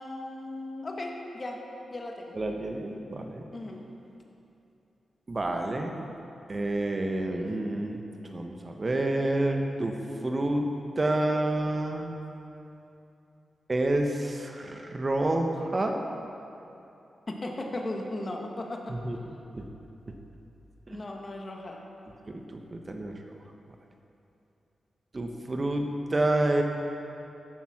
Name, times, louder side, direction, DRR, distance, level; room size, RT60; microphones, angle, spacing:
voice 1, 0.0-1.6 1.9-2.3 3.5-3.8 17.3-19.0 20.9-21.8, left 2 dB, 40° left, 1 dB, 1.8 m, -36 dB
voice 2, 2.4-3.4 5.3-6.0 6.5-8.0 8.2-10.0 10.2-10.6 11.0-12.1 13.7-16.0 19.0-19.2 19.5-19.6 22.5-23.1 25.1-26.6, right 2 dB, 40° right, 3 dB, 1.3 m, -28 dB
13.5 x 7.3 x 5.9 m, 2.8 s
supercardioid pair, 45°, 0 cm